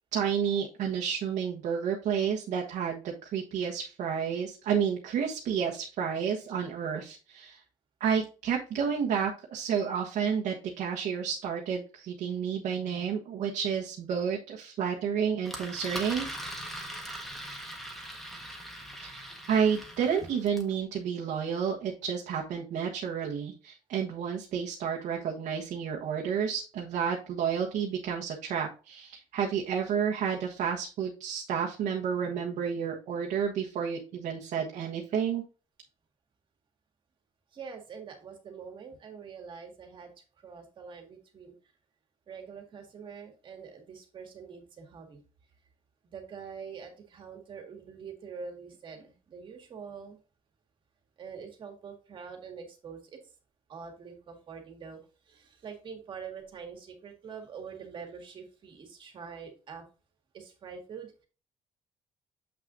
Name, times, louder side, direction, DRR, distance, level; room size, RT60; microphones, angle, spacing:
voice 1, 0.1-7.6 8.0-16.3 19.0-35.4, right 7 dB, 65° right, 0 dB, 1.2 m, -30 dB
Engine, 15.4-20.7, equal, ahead, 1.3 m, -41 dB
voice 2, 37.5-40.1 40.4-41.5 42.3-45.2 46.0-50.2 51.2-53.2 53.7-55.0 55.3-59.8 60.3-61.3, right 6 dB, 40° right, 3 dB, 1.9 m, -45 dB
7.6 x 6.0 x 2.6 m, 0.33 s
cardioid pair, 170°, 13 cm